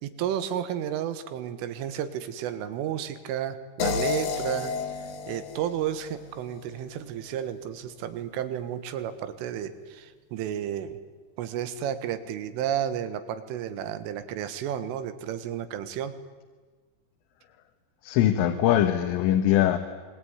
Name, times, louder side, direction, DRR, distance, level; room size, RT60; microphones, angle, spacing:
voice 1, 0.0-4.7 5.3-11.0 11.4-16.1, right 10 dB, 90° right, 11 dB, 4.0 m, -32 dB
sound 1, 3.8-6.9, left 5 dB, 60° left, 3.3 m, -31 dB
voice 2, 18.0-19.8, left 11 dB, 90° left, 5 dB, 3.8 m, -22 dB
26.5 x 21.5 x 9.6 m, 1.4 s
omnidirectional pair, 5.6 m